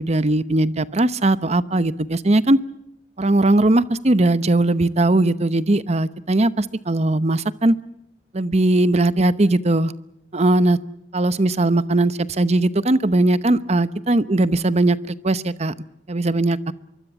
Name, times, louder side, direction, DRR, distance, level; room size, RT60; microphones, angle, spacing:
voice 1, 0.0-2.6 3.2-7.7 8.3-9.9 10.3-10.8 11.1-15.7 16.1-16.7, right 2 dB, 35° right, 0.9 m, -19 dB
25.0 x 23.5 x 7.2 m
head